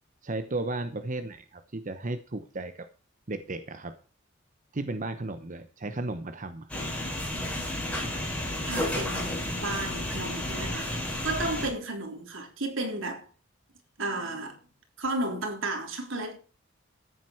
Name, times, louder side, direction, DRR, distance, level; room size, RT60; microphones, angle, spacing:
voice 1, 0.2-2.9 3.3-4.0 4.7-6.7, right 2 dB, 40° right, 0.9 m, -34 dB
sound 1, 6.7-11.7, left 1 dB, 5° left, 5.9 m, -32 dB
voice 2, 8.7-10.9 11.2-13.2 14.0-14.6 15.0-16.4, right 2 dB, 75° right, 3.7 m, -33 dB
14.0 x 9.6 x 4.6 m
head